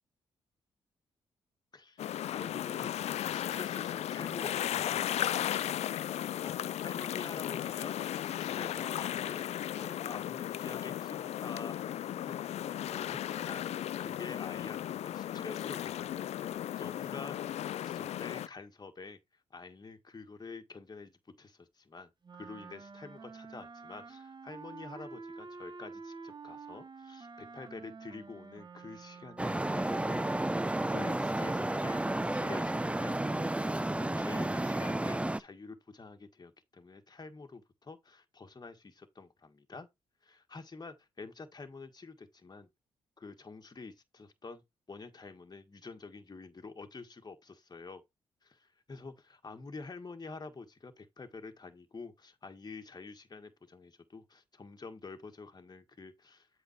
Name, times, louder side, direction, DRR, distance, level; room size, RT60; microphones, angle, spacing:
voice 1, 1.7-2.1 2.3-5.0 6.1-9.5 9.8-11.8 12.1-17.4 17.6-22.1 22.4-39.9 40.2-42.7 43.2-44.6 44.9-48.0 48.4-56.5, left 4 dB, 35° left, 1.6 m, -48 dB
sound 1, 2.0-18.5, left 11 dB, 65° left, 0.4 m, -35 dB
Wind instrument woodwind instrument, 22.2-29.6, right 4 dB, 40° right, 1.0 m, -48 dB
Traffic noise roadway noise, 29.4-35.4, right 1 dB, 10° right, 0.6 m, -32 dB
8.1 x 4.2 x 4.4 m
hypercardioid pair, 45°, 12 cm